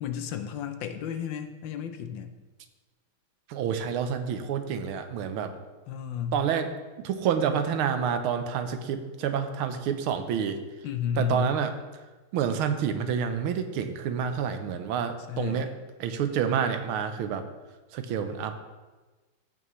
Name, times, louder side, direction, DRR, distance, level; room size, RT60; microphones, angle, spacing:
voice 1, 0.0-2.3 5.9-6.4 10.8-11.5 15.3-15.7, left 8 dB, 70° left, 8 dB, 1.3 m, -32 dB
voice 2, 3.5-5.5 6.3-6.7 7.0-10.6 11.2-11.7 12.3-15.7 16.0-17.4 17.9-18.6, right 7 dB, 85° right, 8 dB, 1.6 m, -28 dB
14.0 x 6.2 x 3.1 m, 1.2 s
omnidirectional pair, 2.3 m